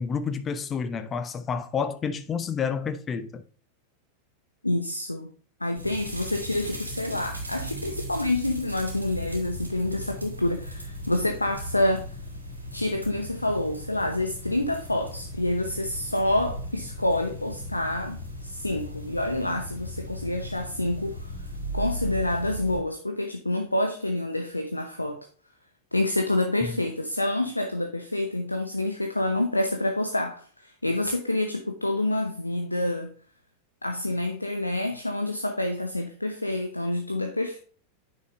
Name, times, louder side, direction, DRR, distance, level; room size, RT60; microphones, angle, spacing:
voice 1, 0.0-3.4 26.6-26.8, left 6 dB, 25° left, 1.0 m, -29 dB
voice 2, 4.6-5.3 5.6-12.1 12.7-21.2 21.7-25.3 25.9-33.1 33.8-37.6, left 1 dB, 85° left, 0.8 m, -27 dB
sound 1, 5.7-22.8, equal, 80° right, 2.9 m, -37 dB
9.4 x 6.6 x 2.5 m
figure-of-eight pair, 90°, 0 cm